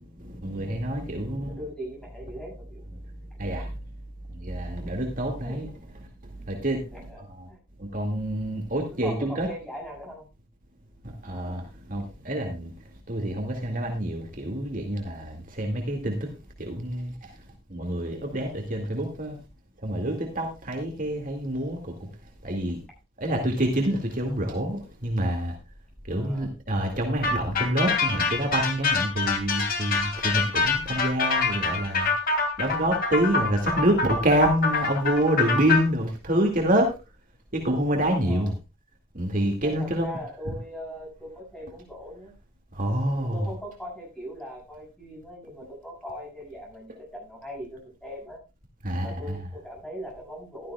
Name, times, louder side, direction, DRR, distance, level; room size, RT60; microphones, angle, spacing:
voice 1, 0.2-1.6 3.4-3.8 4.3-5.7 6.4-6.9 7.4-7.5 7.8-9.5 11.0-12.7 13.1-16.3 16.6-17.3 17.7-19.4 19.8-22.1 22.4-22.8 23.2-25.6 26.1-32.1 32.6-36.9 37.5-38.5 39.1-40.1 42.7-43.4 48.8-49.4, right 1 dB, 40° right, 2 dB, 2.2 m, -27 dB
voice 2, 1.1-2.8 5.4-5.6 6.9-7.2 7.5-7.6 9.0-10.3 26.2-26.5 38.2-38.5 39.6-42.3 43.2-48.4 49.0-50.7, equal, 5° left, -2 dB, 7.2 m, -40 dB
sound 1, 27.2-35.8, left 4 dB, 45° left, 2.9 m, -26 dB
15.5 x 13.0 x 2.4 m, 0.28 s
head